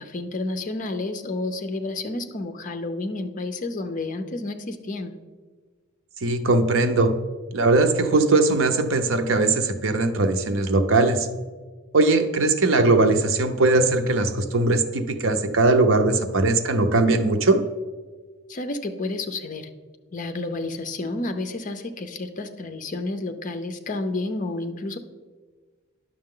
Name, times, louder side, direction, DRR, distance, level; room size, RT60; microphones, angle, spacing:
voice 1, 0.0-5.1 18.5-19.7 20.1-25.0, left 2 dB, 40° left, 7 dB, 0.6 m, -30 dB
voice 2, 6.2-7.1 7.5-11.3 11.9-17.6, right 2 dB, 65° right, 7 dB, 0.7 m, -20 dB
9.9 x 6.3 x 3.8 m, 1.4 s
head